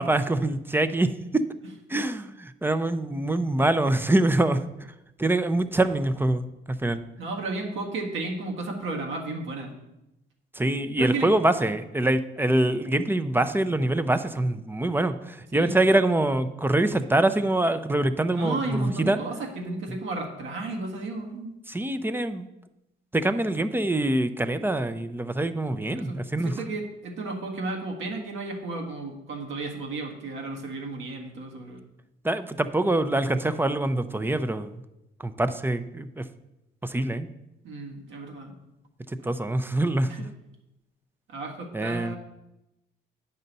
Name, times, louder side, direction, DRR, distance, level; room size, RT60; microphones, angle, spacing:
voice 1, 0.0-1.4 1.9-4.6 5.2-7.0 10.6-19.2 21.7-22.5 23.1-26.5 32.2-34.8 35.2-36.3 36.8-37.3 39.2-40.1 41.7-42.1, right 1 dB, 10° right, 11 dB, 0.5 m, -24 dB
voice 2, 7.2-9.7 11.0-11.3 15.5-15.8 18.3-21.6 25.9-31.8 37.6-38.6 39.2-39.3 41.3-42.2, right 3 dB, 80° right, 0 dB, 1.6 m, -33 dB
9.0 x 5.4 x 4.0 m, 0.92 s
cardioid pair, 90°, 20 cm